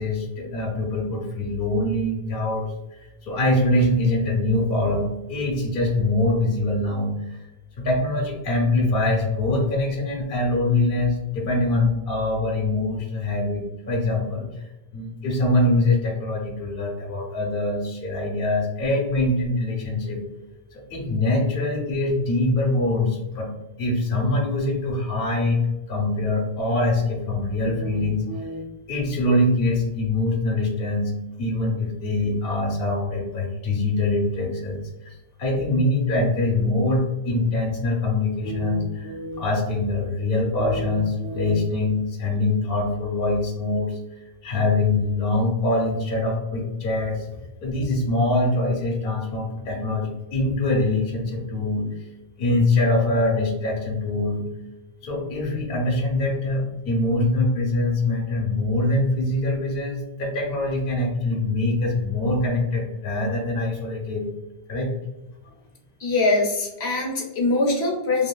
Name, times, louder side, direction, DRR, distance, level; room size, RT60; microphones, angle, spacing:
voice 1, 0.0-7.5 7.8-14.7 14.9-20.2 20.7-23.5 23.8-25.6 25.9-31.1 31.4-52.1 52.4-54.4 55.0-64.3 64.7-64.9, left 2 dB, 65° left, -1 dB, 0.9 m, -24 dB
voice 2, 66.0-68.3, left 2 dB, 90° left, -2 dB, 1.0 m, -22 dB
2.7 x 2.7 x 2.3 m, 1.0 s
omnidirectional pair, 1.0 m